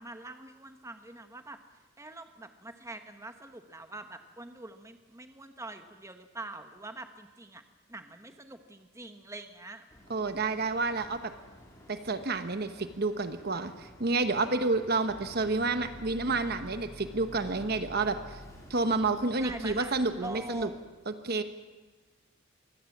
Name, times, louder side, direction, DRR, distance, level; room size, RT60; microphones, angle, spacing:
voice 1, 0.0-1.6 2.0-7.6 7.9-9.8 19.4-20.8, right 2 dB, 15° right, 7 dB, 1.2 m, -44 dB
Boat Water vehicle, 9.9-20.7, left 1 dB, 15° left, 3.5 m, -50 dB
voice 2, 10.1-11.3 11.9-18.4 18.7-20.7 21.1-21.4, right 3 dB, 50° right, 9 dB, 1.1 m, -29 dB
23.5 x 17.0 x 7.3 m, 1.3 s
head